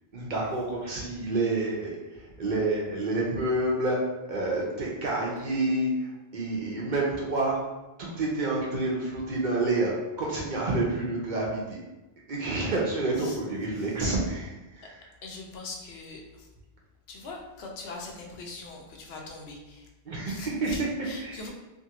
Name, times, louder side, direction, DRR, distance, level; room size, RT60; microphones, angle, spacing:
voice 1, 0.1-1.9 2.4-4.0 4.3-7.6 8.0-11.8 12.3-15.1 20.1-20.9 21.2-21.4, right 2 dB, 55° right, -3 dB, 0.7 m, -28 dB
voice 2, 15.2-16.2 17.1-19.8 20.3-20.8 21.1-21.5, left 3 dB, 75° left, 1 dB, 0.8 m, -41 dB
2.6 x 2.4 x 2.8 m, 1.1 s
omnidirectional pair, 1.1 m